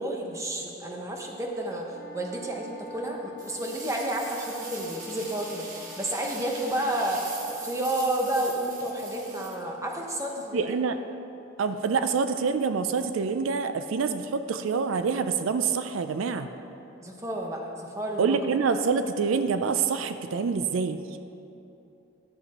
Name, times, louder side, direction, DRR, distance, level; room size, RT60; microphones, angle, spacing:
voice 1, 0.0-7.2 7.5-10.7 17.0-18.4, right 1 dB, 15° right, 0 dB, 0.9 m, -31 dB
sound 1, 1.9-7.4, left 3 dB, 50° left, 1.3 m, -47 dB
sound 2, 3.4-10.1, right 3 dB, 40° right, 1.3 m, -42 dB
voice 2, 10.5-11.0 11.6-16.5 18.2-21.0, right 5 dB, 80° right, 9 dB, 0.4 m, -26 dB
11.5 x 7.0 x 4.2 m, 2.9 s
head